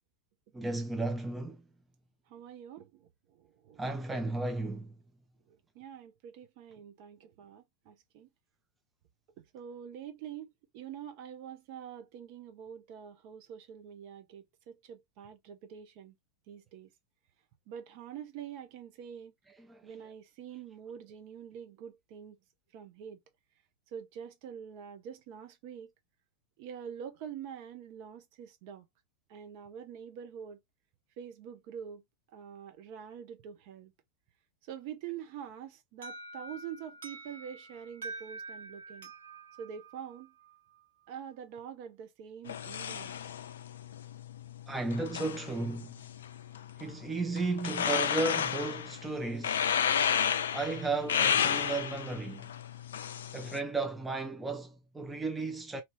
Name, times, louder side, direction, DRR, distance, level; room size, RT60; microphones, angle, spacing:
voice 1, 0.5-1.6 3.8-4.9 19.5-19.8 44.7-46.0 46.8-49.7 50.5-52.5 53.3-55.8, right 3 dB, 10° right, 0.5 m, -34 dB
voice 2, 2.3-3.8 5.7-8.3 9.4-16.1 16.5-16.9 17.7-19.3 19.8-22.4 22.7-23.2 23.9-25.9 26.6-28.9 29.3-30.6 31.2-32.0 32.3-33.9 34.7-39.1 39.6-40.3 41.1-43.2, right 8 dB, 45° right, 0.8 m, -45 dB
Alarm, 36.0-40.8, right 2 dB, 65° right, 1.5 m, -46 dB
sound 1, 42.5-53.6, left 8 dB, 65° left, 0.3 m, -33 dB
2.8 x 2.7 x 3.0 m
figure-of-eight pair, 90°, 0 cm